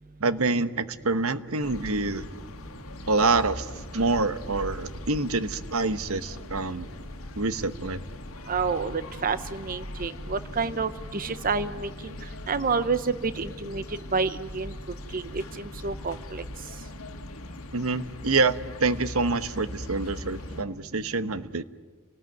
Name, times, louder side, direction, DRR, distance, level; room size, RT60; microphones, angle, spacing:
voice 1, 0.2-2.3 3.1-6.9 7.4-8.0 17.7-21.6, right 3 dB, 90° right, 12 dB, 1.2 m, -26 dB
sound 1, 1.6-20.6, left 1 dB, 85° left, 1.8 m, -40 dB
voice 2, 8.5-11.9 12.5-13.8 14.1-14.7 15.1-16.4, right 4 dB, 40° right, 13 dB, 0.8 m, -29 dB
29.0 x 19.0 x 9.3 m, 1.5 s
head